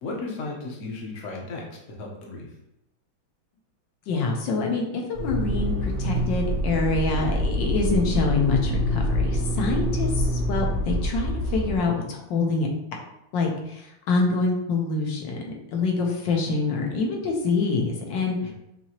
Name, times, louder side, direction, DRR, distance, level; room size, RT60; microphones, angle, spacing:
voice 1, 0.0-2.5 18.4-18.5, left 3 dB, 50° left, -1 dB, 1.0 m, -35 dB
voice 2, 4.1-12.7 13.3-18.4, left 3 dB, 70° left, 0 dB, 1.4 m, -26 dB
Motor vehicle (road), 5.1-11.8, equal, 55° right, 0.6 m, -26 dB
5.8 x 2.8 x 2.9 m, 0.85 s
omnidirectional pair, 2.2 m